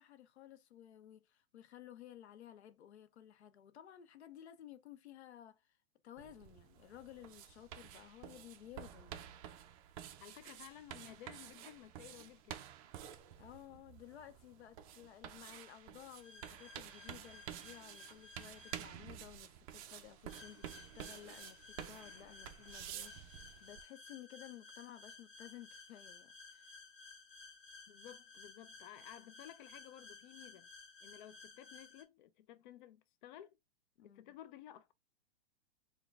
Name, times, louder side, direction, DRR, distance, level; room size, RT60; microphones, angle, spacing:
voice 1, 0.0-5.8 6.0-9.3 13.4-26.7 34.0-34.4, left 11 dB, 80° left, 0.7 m, -55 dB
sound 1, 6.2-23.8, right 10 dB, 35° right, 0.5 m, -51 dB
voice 2, 10.2-12.7 27.9-30.7 31.0-33.6 34.1-34.9, left 12 dB, 45° left, 0.5 m, -55 dB
sound 2, 16.2-18.8 20.3-32.0, left 4 dB, 20° left, 0.9 m, -56 dB
4.6 x 2.2 x 3.2 m
hypercardioid pair, 140°, 33 cm